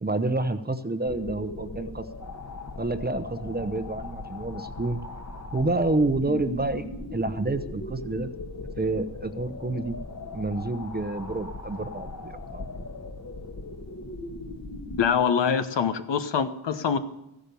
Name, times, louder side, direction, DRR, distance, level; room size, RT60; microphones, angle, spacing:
voice 1, 0.0-2.0 2.8-5.0 5.5-6.8 7.1-8.3 8.8-10.0 10.3-12.6, right 2 dB, 20° right, 10 dB, 0.9 m, -28 dB
sound 1, 1.1-15.1, left 2 dB, 35° left, 1.4 m, -38 dB
voice 2, 15.0-17.0, left 7 dB, 65° left, 9 dB, 1.1 m, -24 dB
14.5 x 10.5 x 6.9 m, 0.86 s
cardioid pair, 85°, 46 cm